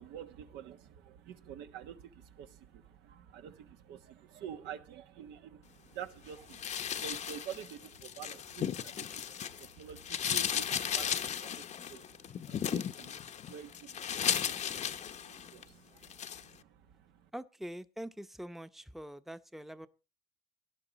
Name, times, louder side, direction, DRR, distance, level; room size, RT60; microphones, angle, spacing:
voice 1, 0.0-17.3, right 9 dB, 85° right, 1.2 m, -48 dB
sound 1, 6.5-9.7 10.0-15.6 16.0-16.4, left 9 dB, 45° left, 0.7 m, -35 dB
voice 2, 17.3-19.9, equal, ahead, 0.7 m, -44 dB
17.5 x 11.0 x 4.1 m
cardioid pair, 110°, 17 cm